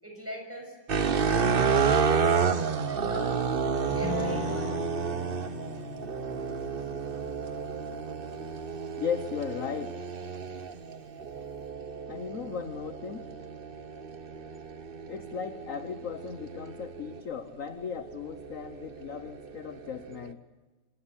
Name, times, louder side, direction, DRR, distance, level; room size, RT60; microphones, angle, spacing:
voice 1, 0.0-0.8 1.2-2.6 2.9-3.4 3.7-5.3, right 1 dB, 5° right, 2 dB, 6.7 m, -42 dB
sound 1, 0.9-17.2 17.8-20.3, right 6 dB, 40° right, 0.8 m, -31 dB
Guitar, 3.9-10.0, left 10 dB, 75° left, 1.8 m, -41 dB
voice 2, 9.0-9.9 12.1-13.3 15.1-20.4, left 7 dB, 50° left, 10 dB, 1.2 m, -36 dB
27.5 x 18.0 x 10.0 m, 1.3 s
omnidirectional pair, 2.2 m